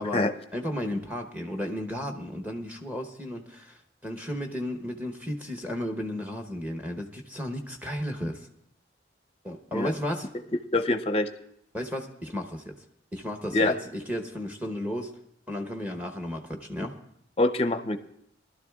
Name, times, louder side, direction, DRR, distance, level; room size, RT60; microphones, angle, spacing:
voice 1, 0.0-8.5 9.4-10.3 11.7-12.8 13.1-15.2 15.5-17.0, equal, 10° right, 4 dB, 0.9 m, -34 dB
voice 2, 10.7-11.3 13.5-13.7 17.4-18.0, left 2 dB, 30° left, 8 dB, 0.6 m, -24 dB
22.5 x 12.0 x 2.3 m, 0.74 s
head